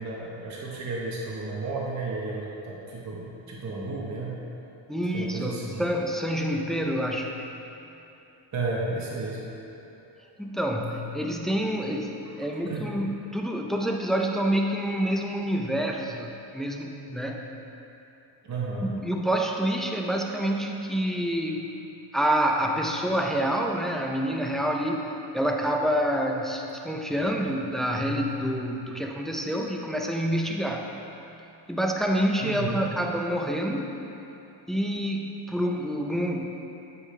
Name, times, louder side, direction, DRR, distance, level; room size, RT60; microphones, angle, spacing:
voice 1, 0.0-4.4 5.1-5.8 8.5-9.4 12.4-12.8 18.4-18.9 32.4-32.8, right 3 dB, 40° right, -4 dB, 1.1 m, -33 dB
voice 2, 4.9-7.4 10.4-17.5 18.8-21.7 22.1-25.1 25.3-30.9 31.7-33.9 34.7-36.5, equal, ahead, 1 dB, 0.4 m, -27 dB
8.2 x 4.9 x 3.2 m, 2.9 s
cardioid pair, 110°, 42 cm